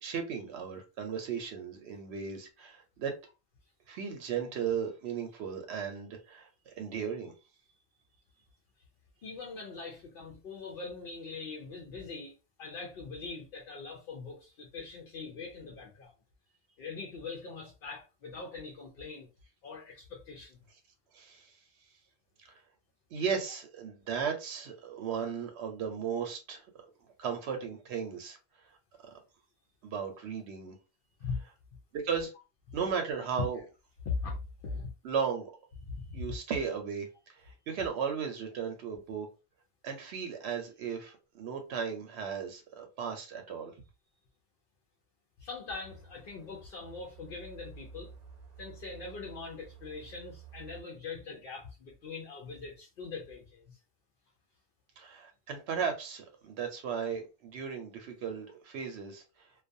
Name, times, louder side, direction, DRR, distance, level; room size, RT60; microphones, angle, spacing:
voice 1, 0.0-3.2 3.9-7.3 21.1-21.5 22.5-22.6 23.1-26.7 27.2-28.4 29.0-29.1 29.8-30.8 31.9-32.3 32.7-33.6 35.0-35.5 36.1-39.3 39.8-43.7 55.0-59.5, right 6 dB, 85° right, 0.9 m, -36 dB
voice 2, 9.2-16.1 16.8-19.3 19.6-20.6 31.2-31.4 33.5-33.6 34.0-34.9 35.9-36.3 45.4-48.1 48.6-53.8, left 4 dB, 65° left, 0.7 m, -41 dB
sound 1, 45.8-50.8, right 6 dB, 50° right, 0.6 m, -52 dB
2.3 x 2.2 x 2.5 m
omnidirectional pair, 1.1 m